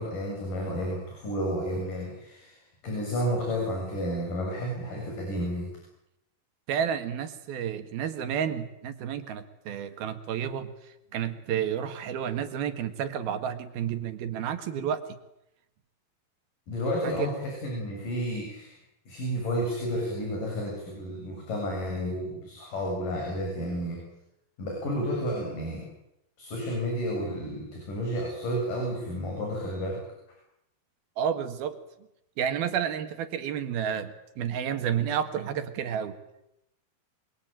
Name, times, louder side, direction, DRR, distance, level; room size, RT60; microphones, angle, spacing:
voice 1, 0.0-2.6 2.8-5.7 16.7-18.8 19.1-24.0 24.6-25.9 26.4-30.0, equal, 60° left, 0 dB, 8.9 m, -31 dB
voice 2, 6.7-15.0 17.0-17.3 31.2-31.8 32.4-36.2, right 8 dB, 75° right, 8 dB, 3.7 m, -31 dB
28.0 x 22.5 x 9.1 m, 0.83 s
omnidirectional pair, 4.4 m